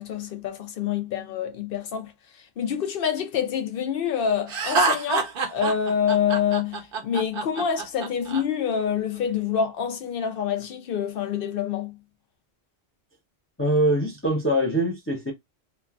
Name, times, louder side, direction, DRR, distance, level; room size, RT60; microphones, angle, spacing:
voice 1, 0.0-2.1 2.6-12.0, left 8 dB, 60° left, 0.8 m, -27 dB
Laughter, 4.5-8.4, right 3 dB, 60° right, 0.8 m, -26 dB
voice 2, 13.6-15.3, right 1 dB, 15° left, 0.5 m, -23 dB
3.0 x 2.2 x 2.2 m
omnidirectional pair, 1.1 m